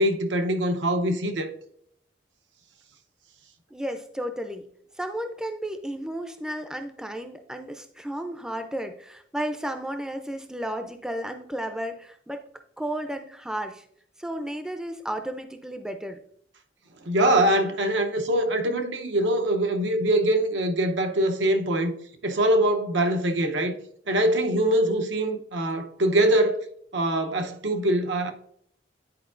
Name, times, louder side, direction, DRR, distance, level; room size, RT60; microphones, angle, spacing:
voice 1, 0.0-1.5 17.0-21.9 22.2-23.8 24.1-26.6 26.9-28.3, right 1 dB, 85° right, 0.8 m, -23 dB
voice 2, 3.7-4.6 5.0-12.5 12.8-13.8 14.2-16.2, right 1 dB, 5° right, 0.4 m, -33 dB
10.0 x 4.4 x 2.5 m
head